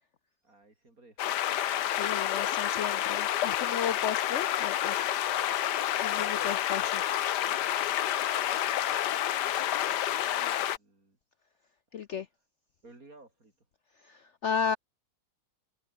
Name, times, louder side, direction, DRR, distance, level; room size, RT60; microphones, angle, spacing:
voice 1, 0.4-1.9 6.1-6.6 7.4-11.2 12.8-13.5, right 2 dB, 55° right, 5.8 m, -56 dB
sound 1, 1.2-10.8, left 12 dB, 85° left, 1.5 m, -29 dB
voice 2, 1.9-5.1 6.0-6.8 11.9-12.3 14.1-14.8, left 7 dB, 60° left, 0.8 m, -34 dB
omnidirectional pair, 1.8 m